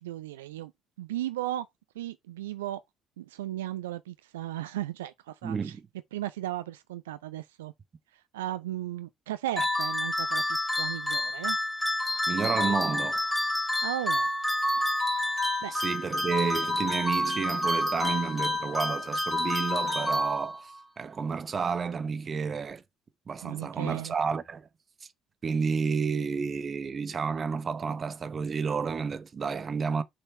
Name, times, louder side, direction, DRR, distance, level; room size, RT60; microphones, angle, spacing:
voice 1, 0.0-0.7 1.0-1.7 2.0-2.8 3.2-5.7 6.1-7.7 8.3-11.6 13.8-14.3 15.6-15.7 23.4-24.1, right 13 dB, 75° right, 0.4 m, -35 dB
voice 2, 5.4-5.9 12.3-13.2 15.7-20.7 21.0-22.8 23.3-24.7 25.4-30.0, right 5 dB, 35° right, 0.9 m, -31 dB
sound 1, 9.6-20.8, left 1 dB, 5° left, 2.6 m, -28 dB
6.5 x 4.3 x 4.4 m
figure-of-eight pair, 50°, 0 cm